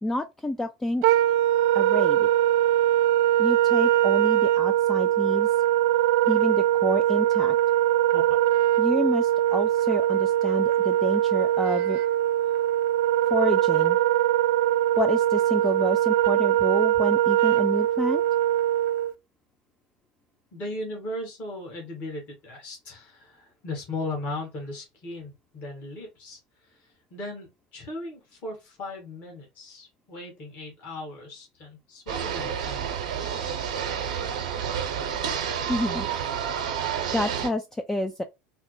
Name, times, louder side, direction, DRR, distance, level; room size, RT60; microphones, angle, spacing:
voice 1, 0.0-1.1 1.7-2.3 3.4-5.5 6.3-7.6 8.8-12.0 13.3-14.0 15.0-18.2 35.7-36.1 37.1-38.2, left 1 dB, 10° left, 0.4 m, -29 dB
Wind instrument woodwind instrument, 1.0-19.1, right 13 dB, 65° right, 0.3 m, -22 dB
voice 2, 20.5-33.6, left 2 dB, 50° left, 1.6 m, -37 dB
sound 1, 32.1-37.5, right 8 dB, 80° right, 0.8 m, -30 dB
4.1 x 2.1 x 3.1 m
hypercardioid pair, 80°, 4 cm